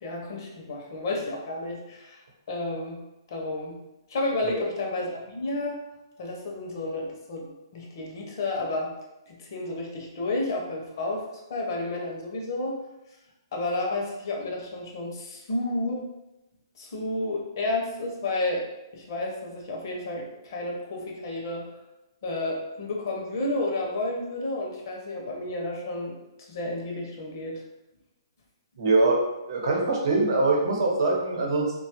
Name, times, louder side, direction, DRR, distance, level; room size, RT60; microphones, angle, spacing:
voice 1, 0.0-2.2 2.5-3.0 3.3-3.8 4.1-5.8 6.2-8.9 9.3-12.8 13.5-16.0 16.8-18.7 18.9-21.7 22.2-26.1 26.5-27.6, left 2 dB, 50° left, -1 dB, 0.7 m, -31 dB
voice 2, 28.8-29.2 29.5-31.7, right 3 dB, 55° right, -1 dB, 0.8 m, -23 dB
2.7 x 2.3 x 2.9 m, 0.94 s
hypercardioid pair, 155°, 3 cm